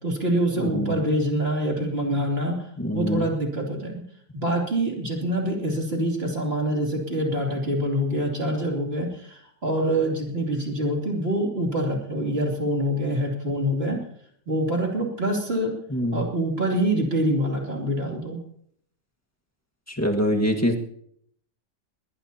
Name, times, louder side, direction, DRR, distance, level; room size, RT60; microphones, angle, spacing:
voice 1, 0.0-2.7 2.9-4.0 4.3-14.0 14.5-15.7 16.1-18.4, right 1 dB, 30° right, 0 dB, 3.0 m, -25 dB
voice 2, 0.6-1.0 2.8-3.3 15.9-16.2 19.9-20.8, equal, 10° left, 2 dB, 1.4 m, -24 dB
21.0 x 19.5 x 2.9 m, 0.67 s
omnidirectional pair, 2.0 m